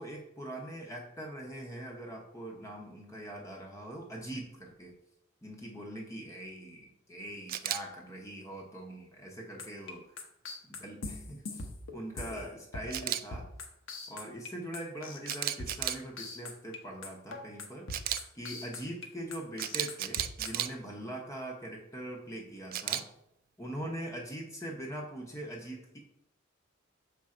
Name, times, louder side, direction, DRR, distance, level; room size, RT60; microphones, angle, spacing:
voice 1, 0.0-4.9 5.4-10.2 10.6-13.5 14.1-17.9 18.3-23.1 23.6-26.0, right 1 dB, 15° left, -1 dB, 0.9 m, -42 dB
Camera, 7.5-7.8 12.9-13.2 15.3-16.0 17.9-18.2 19.6-20.7 22.7-23.0, right 12 dB, 45° right, 0.3 m, -33 dB
sound 1, 9.6-12.4 12.7-13.1 13.3-14.5 14.7-16.8 17.0-19.1 19.3-20.5, left 3 dB, 65° left, 1.0 m, -41 dB
6.8 x 3.8 x 4.3 m, 0.82 s
head